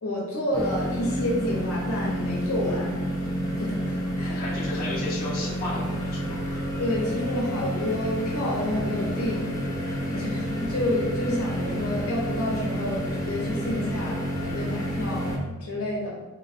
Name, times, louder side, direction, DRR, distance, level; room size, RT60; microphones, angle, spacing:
voice 1, 0.0-3.0 3.6-4.6 6.8-9.5 10.1-16.1, left 1 dB, 75° left, -4 dB, 0.8 m, -29 dB
sound 1, 0.5-15.4, equal, 15° left, 0.5 m, -30 dB
voice 2, 4.3-6.4, left 2 dB, 40° left, -7 dB, 0.8 m, -33 dB
3.2 x 3.0 x 2.6 m, 1.2 s
head